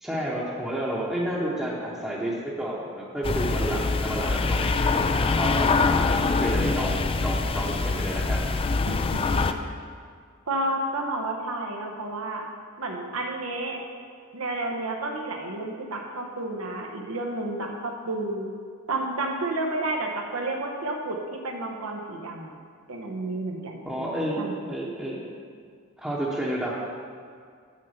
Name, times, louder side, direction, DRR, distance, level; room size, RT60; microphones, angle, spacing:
voice 1, 0.0-5.7 6.1-8.5 23.8-25.2 26.0-26.7, right 1 dB, 5° right, -7 dB, 0.9 m, -30 dB
sound 1, 3.2-9.5, left 4 dB, 25° left, 0.3 m, -24 dB
voice 2, 8.9-9.4 10.5-12.4 12.8-13.8 14.3-18.5 18.9-22.5 22.9-24.5, right 2 dB, 85° right, 1 dB, 1.0 m, -31 dB
7.8 x 6.3 x 5.7 m, 2.1 s
head